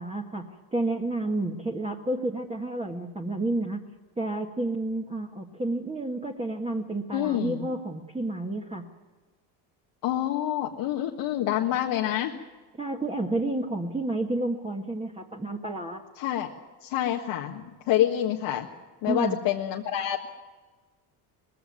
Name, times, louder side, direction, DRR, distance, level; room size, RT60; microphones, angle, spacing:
voice 1, 0.0-3.8 4.2-8.9 12.8-16.0 19.1-19.4, right 2 dB, 15° right, 1 dB, 1.7 m, -30 dB
voice 2, 7.1-7.7 10.0-12.3 16.2-16.5 16.8-18.7 19.0-20.3, left 12 dB, 75° left, 0 dB, 1.7 m, -27 dB
20.0 x 15.5 x 9.4 m, 1.3 s
supercardioid pair, 105°, 45 cm